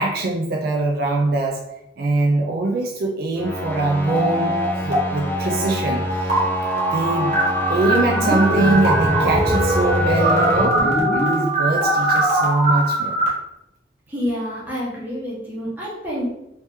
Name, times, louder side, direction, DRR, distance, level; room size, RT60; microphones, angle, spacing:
voice 1, 0.0-1.6 2.0-6.4 6.9-7.4 7.7-13.2, right 2 dB, 55° right, 1 dB, 0.4 m, -23 dB
sound 1, 3.4-10.6, equal, 10° left, 0.4 m, -27 dB
sound 2, 4.0-5.0 5.3-13.3, right 1 dB, 40° right, 1.0 m, -21 dB
voice 2, 14.1-16.3, equal, 10° right, -7 dB, 1.2 m, -28 dB
3.0 x 2.9 x 3.4 m, 0.87 s
head